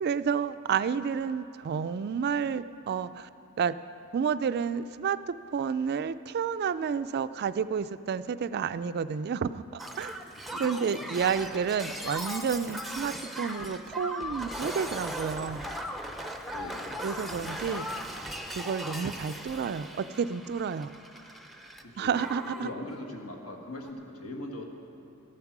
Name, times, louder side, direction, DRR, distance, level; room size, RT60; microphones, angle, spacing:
voice 1, 0.0-3.3 3.6-3.8 4.1-10.1 10.6-15.6 17.0-18.0 18.6-20.9 22.0-22.7, right 6 dB, 50° right, 13 dB, 0.3 m, -30 dB
Shatter, 9.8-21.8 22.1-22.7 23.8-23.9, equal, ahead, 0.5 m, -38 dB
voice 2, 10.3-11.0 16.4-17.1 21.8-24.6, left 1 dB, 75° left, 1 dB, 1.7 m, -41 dB
14.0 x 11.0 x 6.0 m, 2.6 s
head